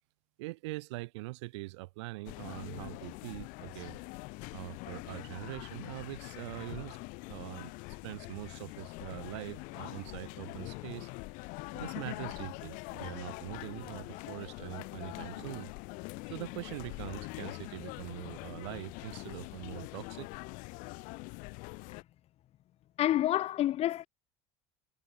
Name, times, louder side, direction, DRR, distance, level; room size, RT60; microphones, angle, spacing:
voice 1, 0.4-4.0 4.5-7.0 7.3-11.1 11.7-15.7 16.3-20.3, right 22 dB, 85° right, 1.5 m, -43 dB
sound 1, 2.3-22.0, left 28 dB, 70° left, 1.8 m, -44 dB
voice 2, 23.0-24.1, left 13 dB, 45° left, 0.7 m, -28 dB
supercardioid pair, 105°, 14 cm